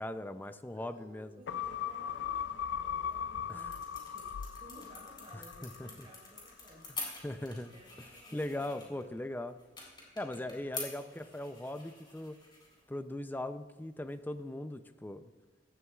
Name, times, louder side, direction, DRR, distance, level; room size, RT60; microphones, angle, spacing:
voice 1, 0.0-1.4 3.5-3.7 5.3-6.1 7.2-7.7 8.3-9.6 10.2-12.4 12.9-15.2, left 1 dB, 10° left, 10 dB, 0.4 m, -39 dB
voice 2, 0.6-7.3 7.5-9.0 10.3-10.6, right 1 dB, 30° right, -10 dB, 4.0 m, -57 dB
sound 1, 1.5-6.1 6.5-6.6, left 8 dB, 70° left, 0.4 m, -38 dB
sound 2, 2.9-14.4, left 3 dB, 25° left, 3.7 m, -48 dB
16.0 x 12.5 x 2.4 m, 1.2 s
head